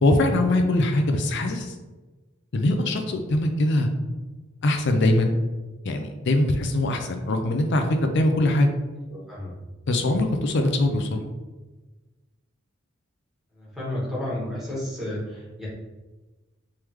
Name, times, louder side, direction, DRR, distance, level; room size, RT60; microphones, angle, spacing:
voice 1, 0.0-1.7 2.5-3.9 4.6-5.4 5.8-7.9 8.1-8.7 9.9-11.2, left 1 dB, 60° left, 5 dB, 0.5 m, -22 dB
voice 2, 9.1-9.6 13.5-15.7, left 1 dB, ahead, -8 dB, 1.4 m, -32 dB
3.6 x 3.2 x 3.0 m, 1.2 s
head